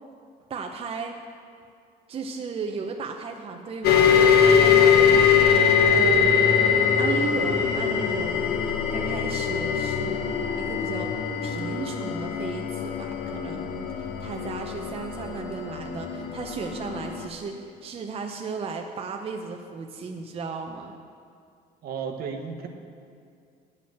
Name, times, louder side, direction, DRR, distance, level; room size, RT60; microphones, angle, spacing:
voice 1, 0.5-1.2 2.1-4.1 4.4-6.4 7.0-8.6 8.9-20.9, right 4 dB, 35° right, 3 dB, 0.6 m, -35 dB
sound 1, 3.8-17.3, left 7 dB, 70° left, 0.9 m, -22 dB
voice 2, 21.8-22.7, right 6 dB, 65° right, 4 dB, 1.1 m, -33 dB
9.5 x 5.4 x 7.9 m, 2.3 s
cardioid pair, 110°, 17 cm